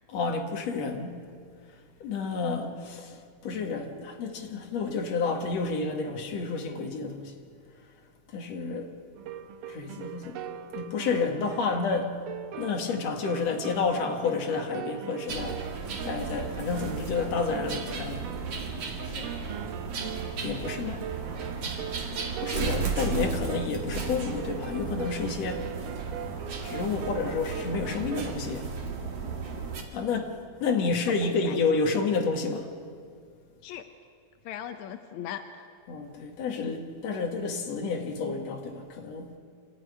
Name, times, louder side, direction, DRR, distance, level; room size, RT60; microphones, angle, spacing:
voice 1, 0.1-1.2 2.0-7.3 8.3-8.9 9.7-10.4 10.7-12.1 12.6-15.6 16.0-18.2 20.4-21.0 22.2-25.7 26.6-28.7 29.9-30.4 30.6-32.7 35.9-39.3, left 4 dB, 50° left, 2.6 m, -30 dB
sound 1, 9.1-28.4, right 9 dB, 85° right, 2.8 m, -41 dB
sound 2, 15.3-29.8, right 5 dB, 45° right, 2.7 m, -35 dB
voice 2, 31.1-31.6 33.6-33.8 34.4-35.6, left 10 dB, 75° left, 1.7 m, -39 dB
26.0 x 15.5 x 9.7 m
omnidirectional pair, 4.4 m